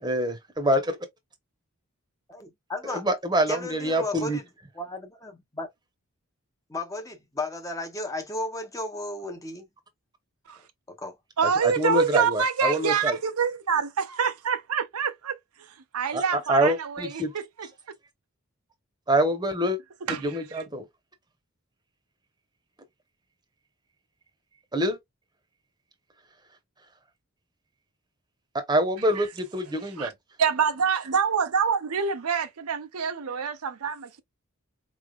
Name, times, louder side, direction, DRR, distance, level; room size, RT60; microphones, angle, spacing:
voice 1, 0.0-1.0 2.8-4.4 11.6-13.2 16.1-16.2 16.5-17.3 19.1-19.8 20.2-20.8 24.7-25.0 28.5-30.1, right 1 dB, 20° right, 0.9 m, -25 dB
voice 2, 2.3-3.1 3.5-4.4 4.7-5.7 6.7-9.7 10.9-11.1, left 2 dB, 15° left, 0.7 m, -34 dB
voice 3, 11.4-17.7 20.1-20.6 29.2-29.3 29.9-30.1 30.4-34.2, right 6 dB, 85° right, 0.6 m, -26 dB
4.5 x 3.2 x 2.3 m
head